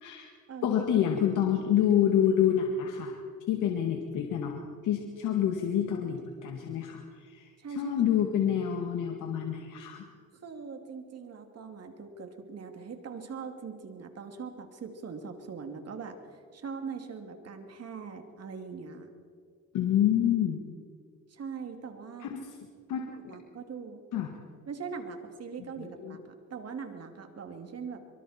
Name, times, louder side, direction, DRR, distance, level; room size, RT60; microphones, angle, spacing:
voice 1, 0.0-0.3 0.6-3.2 3.5-10.0 19.7-20.6 22.3-22.4 22.9-23.1 24.1-24.3 25.8-26.2, left 9 dB, 85° left, 2 dB, 2.0 m, -27 dB
voice 2, 7.6-8.0 10.4-19.1 21.3-22.3 23.1-24.0 24.7-28.0, right 5 dB, 55° right, 5 dB, 2.8 m, -41 dB
24.5 x 24.0 x 4.4 m, 2.1 s
cardioid pair, 90°, 30 cm